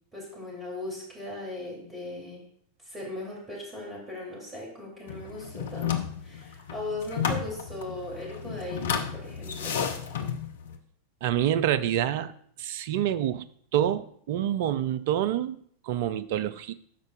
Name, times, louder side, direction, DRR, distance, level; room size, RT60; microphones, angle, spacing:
voice 1, 0.1-2.4 2.8-5.9 6.2-9.9, left 1 dB, 15° right, -3 dB, 3.3 m, -38 dB
sound 1, 5.1-10.8, left 7 dB, 60° left, 0.7 m, -32 dB
voice 2, 11.2-12.3 12.6-13.5 13.7-16.7, right 11 dB, 50° right, 15 dB, 0.4 m, -27 dB
12.5 x 5.3 x 2.6 m, 0.63 s
figure-of-eight pair, 90°, 0 cm